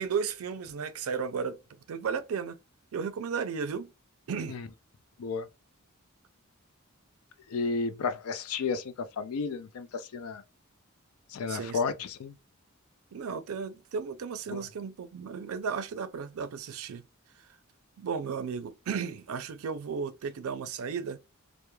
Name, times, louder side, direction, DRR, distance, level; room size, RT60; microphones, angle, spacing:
voice 1, 0.0-1.6 1.9-2.6 2.9-3.9 4.3-4.6 11.5-11.8 13.1-17.0 18.0-21.2, right 6 dB, 75° right, 0.4 m, -34 dB
voice 2, 7.5-10.4 11.3-12.4 14.5-14.6, left 4 dB, 85° left, 0.4 m, -32 dB
2.2 x 2.0 x 3.0 m
head